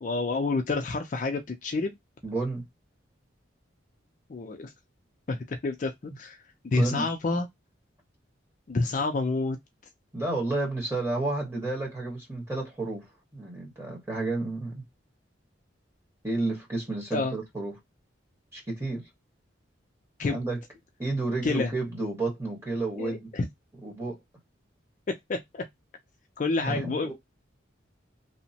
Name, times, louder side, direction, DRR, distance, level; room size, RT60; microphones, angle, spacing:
voice 1, 0.0-1.9 4.3-4.7 5.3-5.9 6.2-6.4 6.6-7.5 8.7-9.6 17.1-17.4 20.2-20.4 21.4-21.7 23.0-23.5 25.1-25.6 26.4-27.1, left 3 dB, 40° left, 0.4 m, -28 dB
voice 2, 2.2-2.6 6.1-6.2 6.7-7.1 10.1-13.1 13.3-14.7 16.2-17.7 18.5-19.0 20.3-20.6 21.0-23.3 23.8-24.2 26.6-27.1, right 2 dB, 15° right, 1.2 m, -31 dB
2.8 x 2.1 x 2.6 m
head